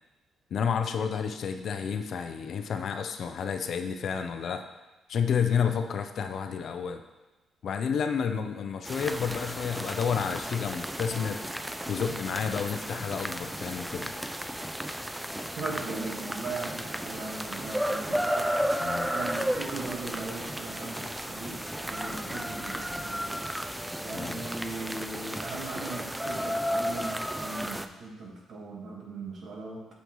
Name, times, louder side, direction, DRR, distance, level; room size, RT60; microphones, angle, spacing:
voice 1, 0.5-4.6 5.1-7.0 7.6-11.4 11.9-14.1 18.8-19.1 24.1-24.5, left 7 dB, 60° left, 7 dB, 0.6 m, -30 dB
sound 1, 8.8-27.9, equal, 5° right, 0.4 m, -33 dB
voice 2, 15.5-18.7 19.1-23.4 24.0-29.9, right 3 dB, 60° right, 0 dB, 1.5 m, -38 dB
8.0 x 6.3 x 3.1 m, 1.1 s
cardioid pair, 90°, 0 cm